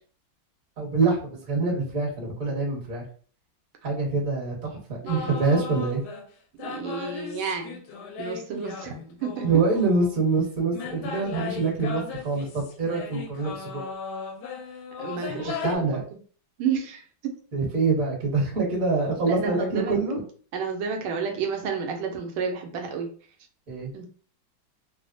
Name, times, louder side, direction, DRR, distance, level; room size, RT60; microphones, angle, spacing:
voice 1, 0.8-3.0 3.8-6.0 9.4-13.8 15.4-16.0 17.5-20.2 23.7-23.9, right 3 dB, 45° right, -3 dB, 1.6 m, -25 dB
voice 2, 5.0-5.4 6.6-7.8 8.2-9.5 15.0-16.0 16.6-17.3 19.3-20.0 20.5-23.1 23.9-24.1, right 6 dB, 90° right, 3 dB, 1.6 m, -31 dB
sound 1, 5.1-6.3 6.6-10.2 10.7-15.8, left 5 dB, 75° left, 0.9 m, -37 dB
3.7 x 2.0 x 2.5 m, 0.43 s
omnidirectional pair, 2.3 m